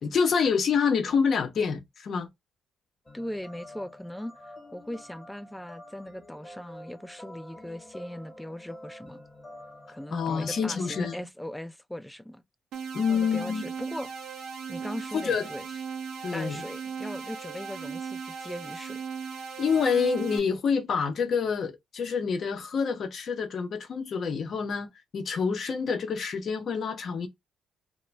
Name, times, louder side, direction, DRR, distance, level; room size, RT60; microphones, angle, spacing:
voice 1, 0.0-2.3 10.1-11.2 12.9-13.6 15.1-15.5 16.2-16.6 19.6-27.3, left 6 dB, 55° left, 0.6 m, -27 dB
sound 1, 3.1-11.2, left 1 dB, 25° left, 0.9 m, -47 dB
voice 2, 3.1-9.2 9.9-12.4 13.1-14.1 14.7-15.7 16.3-19.0, left 1 dB, 5° left, 0.3 m, -39 dB
sound 2, 12.7-20.4, right 6 dB, 85° right, 0.6 m, -38 dB
2.4 x 2.1 x 3.0 m
cardioid pair, 90°, 0 cm